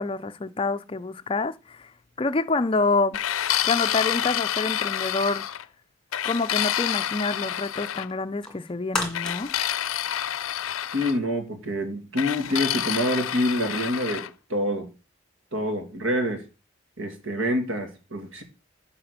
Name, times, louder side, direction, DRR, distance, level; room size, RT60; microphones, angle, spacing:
voice 1, 0.0-1.9 2.2-3.2 3.6-5.4 6.2-9.5, left 3 dB, 25° left, 0.4 m, -27 dB
sound 1, 3.1-5.6 6.1-8.1 9.1-11.2 12.2-14.3, left 11 dB, 85° left, 0.5 m, -28 dB
sound 2, 8.1-10.9 11.3-11.4, left 2 dB, 5° left, 1.8 m, -34 dB
voice 2, 10.9-14.9 15.5-16.4 17.0-18.4, equal, 75° right, 2.2 m, -27 dB
10.0 x 4.3 x 6.5 m
head